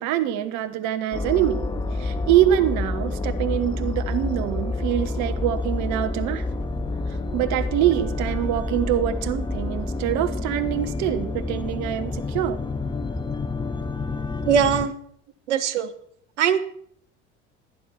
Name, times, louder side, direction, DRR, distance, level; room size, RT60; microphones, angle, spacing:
voice 1, 0.0-1.6 2.0-6.4 7.3-12.6, right 12 dB, 50° right, 10 dB, 1.3 m, -24 dB
sound 1, 1.1-14.9, left 2 dB, 10° left, 0.8 m, -28 dB
voice 2, 14.4-14.9 15.5-15.9 16.4-16.6, right 8 dB, 70° right, 9 dB, 1.4 m, -20 dB
16.5 x 9.9 x 5.9 m, 0.65 s
figure-of-eight pair, 65°, 37 cm